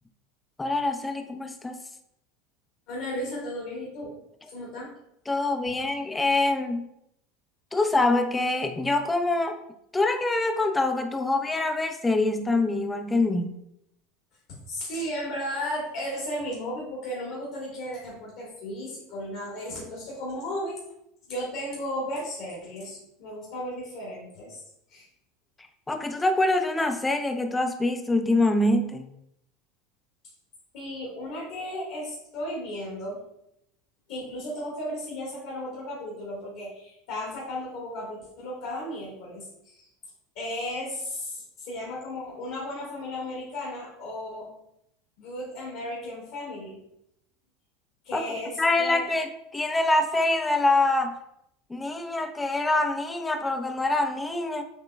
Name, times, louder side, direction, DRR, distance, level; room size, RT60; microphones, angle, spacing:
voice 1, 0.6-1.8 5.3-6.9 7.7-9.6 9.9-13.6 25.9-29.1 48.1-48.3 48.6-51.2 51.7-54.6, left 2 dB, 15° left, 7 dB, 0.5 m, -25 dB
voice 2, 2.9-4.2 4.4-4.9 14.5-20.8 21.3-24.6 24.9-25.1 30.7-33.2 34.1-39.9 40.3-44.5 45.2-46.8 48.0-49.1, left 1 dB, 65° left, -4 dB, 1.5 m, -35 dB
7.0 x 2.9 x 2.2 m, 0.78 s
hypercardioid pair, 80°, 0 cm